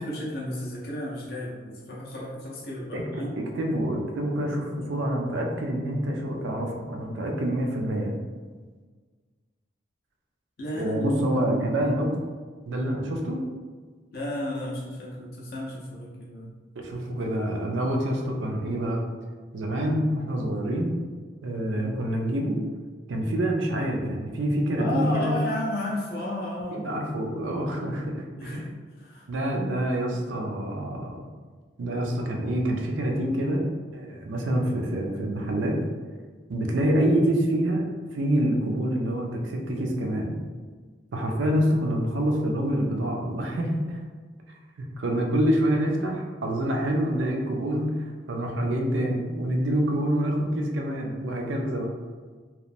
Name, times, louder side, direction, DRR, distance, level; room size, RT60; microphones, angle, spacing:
voice 1, 0.0-3.3 10.6-11.5 14.1-16.5 21.7-22.0 24.8-26.9 28.3-29.3, left 1 dB, 50° left, -5 dB, 0.4 m, -33 dB
voice 2, 2.9-3.2 3.5-8.1 10.7-12.2 12.7-13.4 16.8-19.0 19.5-20.9 21.4-22.6 23.1-25.4 26.7-28.7 29.3-31.2 31.8-33.7 33.9-35.8 36.5-37.9 38.1-40.3 41.1-44.0 44.8-47.9 48.3-51.9, right 1 dB, 75° right, 1 dB, 0.4 m, -26 dB
2.8 x 2.0 x 2.5 m, 1.5 s
head